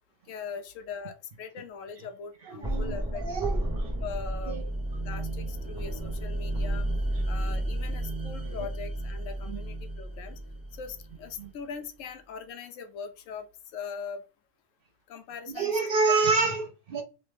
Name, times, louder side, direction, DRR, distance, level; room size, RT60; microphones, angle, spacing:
voice 1, 0.3-3.2 4.0-4.6 5.0-6.9 7.3-10.4 10.8-13.5 13.7-14.2 15.1-16.1, left 6 dB, 80° left, 1.0 m, -41 dB
voice 2, 2.5-3.9 4.5-4.7 8.4-8.6 9.5-9.6 11.4-11.5 15.5-17.0, right 4 dB, 60° right, 0.6 m, -28 dB
sound 1, 2.6-11.5, right 1 dB, 5° right, 0.6 m, -32 dB
3.0 x 2.0 x 3.2 m
omnidirectional pair, 1.3 m